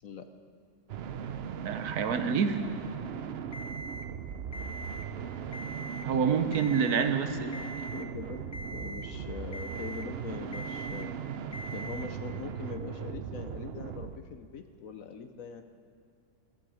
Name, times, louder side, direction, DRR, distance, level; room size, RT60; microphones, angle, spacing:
sound 1, 0.9-14.2, right 8 dB, 90° right, 0.5 m, -38 dB
voice 1, 1.6-2.6 6.0-7.3, right 6 dB, 65° right, 9 dB, 1.4 m, -27 dB
Alarm, 3.5-4.1 4.5-5.1 5.5-6.1 6.5-7.1 7.5-8.1 8.5-9.1 9.5-10.1 10.5-11.1 11.5-12.1, equal, 40° left, 0.5 m, -42 dB
voice 2, 6.9-7.6 7.9-8.4 8.7-11.1 11.7-15.6, left 5 dB, 60° left, 8 dB, 1.1 m, -42 dB
15.0 x 14.5 x 5.0 m, 2.4 s
omnidirectional pair, 1.8 m